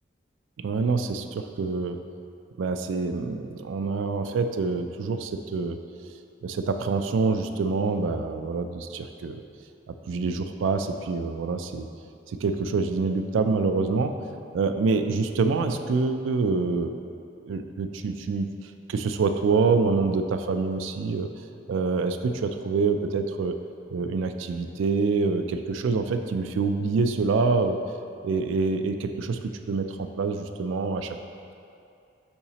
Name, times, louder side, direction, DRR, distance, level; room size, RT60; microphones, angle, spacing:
voice 1, 0.6-2.0 2.6-5.8 6.4-9.4 9.9-11.9 12.3-14.1 14.5-17.0 17.4-18.5 18.9-21.3 21.7-23.5 23.9-27.8 28.2-29.4 29.7-31.2, right 4 dB, 85° right, 7 dB, 0.3 m, -26 dB
7.0 x 4.8 x 2.8 m, 2.5 s
head